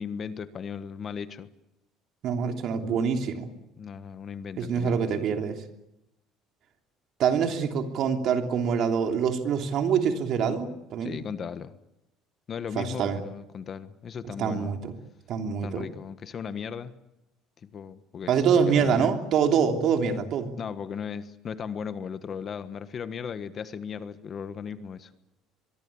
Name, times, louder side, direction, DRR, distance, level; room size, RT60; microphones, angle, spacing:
voice 1, 0.0-1.5 3.8-5.2 11.0-11.7 12.5-14.8 15.6-16.9 17.6-19.1 20.6-25.1, left 7 dB, 35° left, 12 dB, 1.4 m, -37 dB
voice 2, 2.2-3.5 4.6-5.6 7.2-11.2 12.7-13.2 14.4-14.9 15.3-15.8 18.3-20.5, right 6 dB, 50° right, 5 dB, 3.2 m, -25 dB
24.0 x 23.0 x 8.6 m, 0.90 s
cardioid pair, 140°, 0 cm